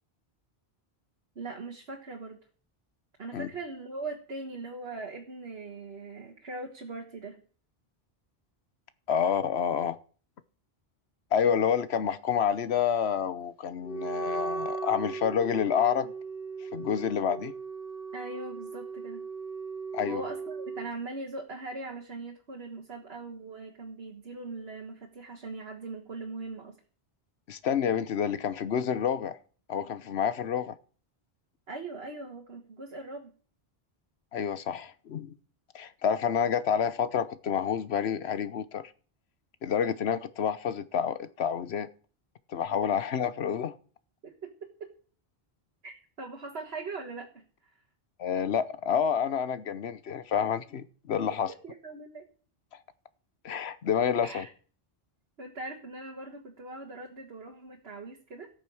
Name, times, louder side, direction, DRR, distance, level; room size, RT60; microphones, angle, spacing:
voice 1, 1.4-2.4 3.2-7.4 18.1-19.2 20.1-26.8 31.7-33.3 42.9-43.0 44.2-44.9 45.8-47.4 51.3-52.3 54.2-54.5 55.4-58.5, right 3 dB, 75° right, 1.9 m, -40 dB
voice 2, 9.1-10.0 11.3-16.1 16.7-17.5 19.9-20.2 27.5-29.4 29.7-30.8 34.3-35.3 35.7-38.9 39.6-41.9 42.5-43.7 48.2-51.5 53.4-54.5, left 8 dB, 80° left, 1.1 m, -28 dB
Wind instrument woodwind instrument, 13.8-20.9, right 5 dB, 55° left, 1.7 m, -37 dB
13.5 x 8.9 x 6.3 m
omnidirectional pair, 1.1 m